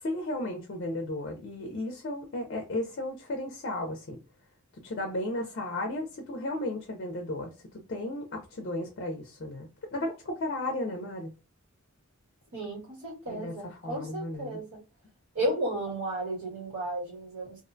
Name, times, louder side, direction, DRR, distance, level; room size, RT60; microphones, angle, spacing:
voice 1, 0.0-4.2 4.8-7.5 7.9-11.3 13.3-14.6, left 1 dB, 50° left, 0.4 m, -34 dB
voice 2, 12.5-14.8 15.3-17.6, right 1 dB, 85° right, 1.5 m, -33 dB
2.5 x 2.1 x 2.5 m
head